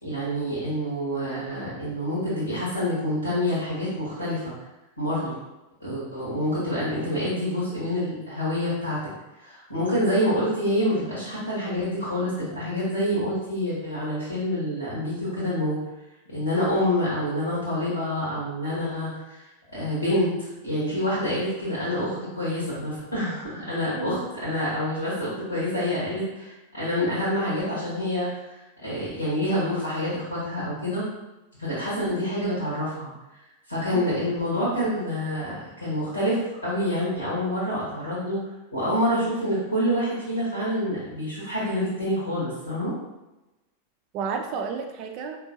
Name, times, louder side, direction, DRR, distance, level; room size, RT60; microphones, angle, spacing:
voice 1, 0.0-4.5 5.0-5.3 5.8-9.0 9.4-15.8 16.3-19.4 19.7-31.0 31.6-33.1 33.7-38.4 38.7-42.9, equal, 85° left, -8 dB, 1.4 m, -27 dB
voice 2, 23.9-24.3 31.9-32.2 33.9-34.2 44.1-45.4, right 5 dB, 40° right, 4 dB, 0.4 m, -32 dB
4.4 x 2.9 x 2.6 m, 1.0 s
figure-of-eight pair, 90°, 0 cm